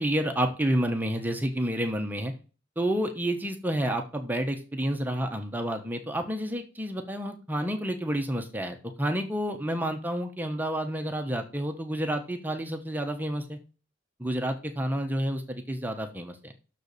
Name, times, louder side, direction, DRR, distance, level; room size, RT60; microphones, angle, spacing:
voice 1, 0.0-2.3 2.8-13.6 14.2-16.5, right 1 dB, 10° right, 5 dB, 0.9 m, -29 dB
6.6 x 4.5 x 6.7 m, 0.34 s
head